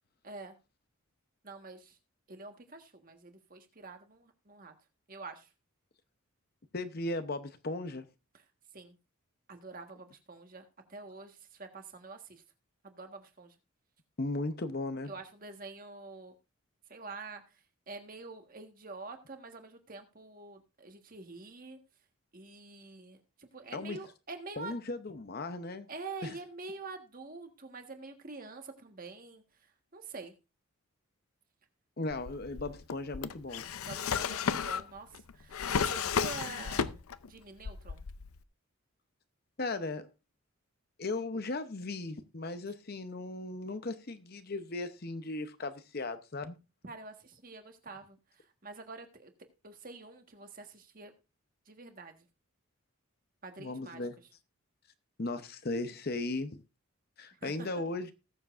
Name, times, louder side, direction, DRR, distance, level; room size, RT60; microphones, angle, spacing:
voice 1, 0.2-0.6 1.4-2.0 2.3-4.7 5.1-5.5 8.3-8.4 8.7-9.0 9.5-12.4 12.8-13.6 15.1-16.3 16.9-21.8 22.3-24.7 25.9-30.3 33.8-38.0 46.8-49.3 49.6-51.1 51.6-52.3 53.4-54.0 57.3-57.7, right 3 dB, 40° right, 1.5 m, -47 dB
voice 2, 6.7-8.0 14.2-15.1 23.7-24.0 24.6-25.9 26.2-26.3 32.0-33.6 39.6-40.1 41.0-46.6 53.6-54.1 55.2-56.6 57.2-58.1, left 2 dB, 45° left, 0.8 m, -37 dB
Drawer open or close, 32.1-37.3 37.6-38.4, left 6 dB, 75° left, 0.6 m, -33 dB
19.0 x 7.3 x 2.5 m
head